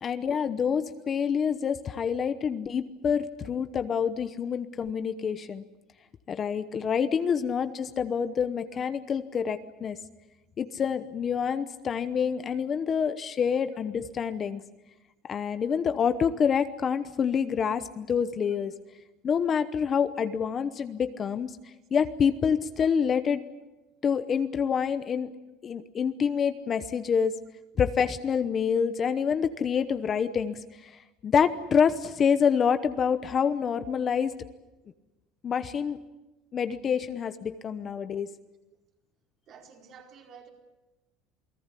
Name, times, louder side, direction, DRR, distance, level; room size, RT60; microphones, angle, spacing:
voice 1, 0.0-5.6 6.3-10.0 10.6-14.6 15.2-18.7 19.2-21.5 21.9-23.4 24.0-25.3 25.6-27.3 27.8-31.0 31.2-34.3 35.4-36.0 36.5-38.3, left 7 dB, 30° left, 11 dB, 0.9 m, -27 dB
voice 2, 39.5-40.5, right 6 dB, 40° right, 1 dB, 4.7 m, -51 dB
28.5 x 19.5 x 8.4 m, 1.0 s
cardioid pair, 150°, 0 cm